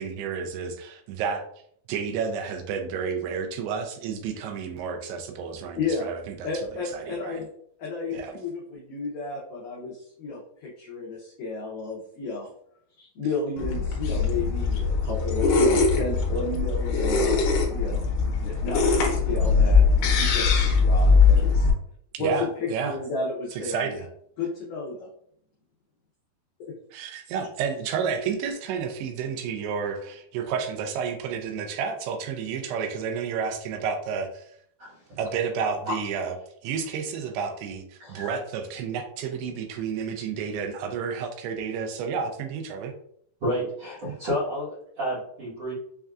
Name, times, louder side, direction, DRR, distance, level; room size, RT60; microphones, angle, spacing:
voice 1, 0.0-1.5 1.9-7.4 8.1-8.3 22.1-23.0 23.5-24.1 26.9-34.5 35.2-36.3 36.6-42.9, right 6 dB, 85° right, 5 dB, 2.5 m, -31 dB
voice 2, 5.8-6.1 6.4-7.5 7.8-12.5 13.0-17.4 17.7-18.0 18.4-19.8 20.1-21.7 22.2-24.1 24.4-25.1 26.7-26.8, left 3 dB, 90° left, -4 dB, 1.8 m, -32 dB
sound 1, 13.6-21.7, left 4 dB, 75° left, 2.2 m, -21 dB
voice 3, 34.8-35.2 35.8-36.0 38.0-38.3 43.4-45.7, equal, 60° right, -10 dB, 1.5 m, -30 dB
6.4 x 2.3 x 2.4 m, 0.67 s
omnidirectional pair, 4.7 m